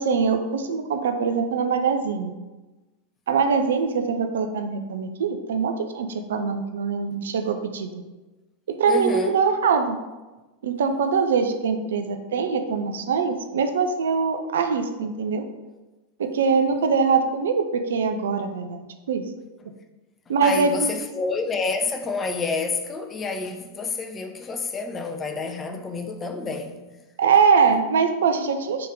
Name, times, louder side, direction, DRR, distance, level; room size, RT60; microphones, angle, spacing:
voice 1, 0.0-2.4 3.3-7.9 8.7-10.0 10.6-15.4 16.2-19.2 20.3-21.2 27.2-28.9, right 5 dB, 60° right, 0.4 m, -23 dB
voice 2, 8.9-9.4 20.4-26.8, left 4 dB, 20° left, 0.5 m, -28 dB
3.8 x 3.5 x 3.7 m
figure-of-eight pair, 90°, 0 cm